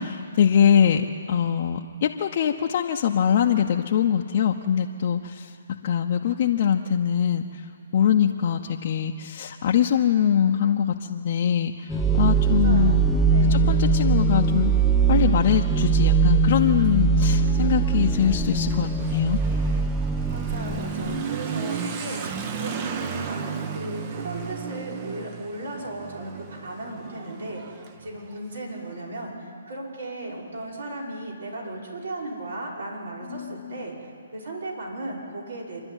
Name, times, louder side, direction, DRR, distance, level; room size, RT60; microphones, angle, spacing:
voice 1, 0.0-5.5 5.8-7.6 7.9-13.0 13.5-14.7 15.1-19.4 33.3-33.8, left 8 dB, 45° left, 1 dB, 0.9 m, -23 dB
sound 1, 11.9-21.2, right 4 dB, ahead, 0.6 m, -21 dB
voice 2, 12.4-13.0 13.3-13.7 20.2-35.8, right 1 dB, 75° right, -2 dB, 5.7 m, -36 dB
Motorcycle / Accelerating revving vroom, 16.7-29.0, right 6 dB, 30° right, 1.2 m, -35 dB
27.5 x 11.5 x 9.2 m, 2.3 s
hypercardioid pair, 150°, 0 cm